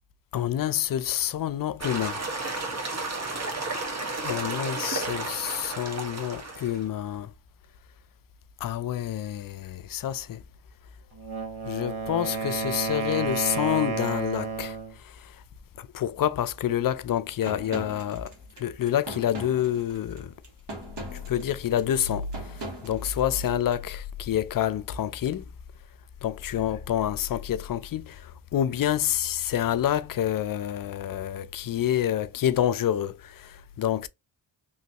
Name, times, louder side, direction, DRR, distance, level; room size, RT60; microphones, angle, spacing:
voice 1, 0.3-2.2 4.2-7.3 8.6-10.4 11.7-14.8 15.8-20.3 21.3-22.3 22.8-25.5 26.2-34.1, left 11 dB, 45° left, 0.4 m, -28 dB
sound 1, 1.8-6.9, right 2 dB, 30° right, 1.2 m, -32 dB
Wind instrument woodwind instrument, 11.1-15.0, right 5 dB, 85° right, 1.0 m, -31 dB
sound 2, 17.4-23.8, right 1 dB, 60° right, 1.7 m, -40 dB
3.1 x 2.7 x 2.8 m
cardioid pair, 60°, 48 cm